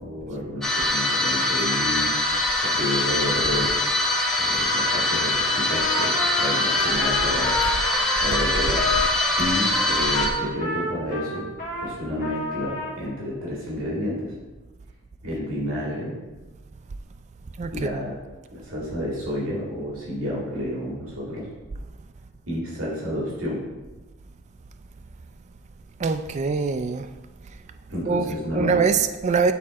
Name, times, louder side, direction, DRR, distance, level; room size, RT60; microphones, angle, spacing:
voice 1, 0.0-3.7 4.4-7.5 8.2-8.8 9.4-11.4 11.8-14.3 15.2-16.1 17.7-18.2 18.5-21.5 22.5-23.6 27.9-28.8, equal, 70° right, 2.1 m, -30 dB
sound 1, 0.6-10.3, left 1 dB, ahead, 0.9 m, -23 dB
Trumpet, 5.7-11.9 12.2-13.0, left 2 dB, 40° left, 1.6 m, -29 dB
voice 2, 17.6-18.2 26.0-27.1 28.0-28.3 28.5-29.5, right 5 dB, 30° right, 0.3 m, -23 dB
8.4 x 3.8 x 4.2 m
head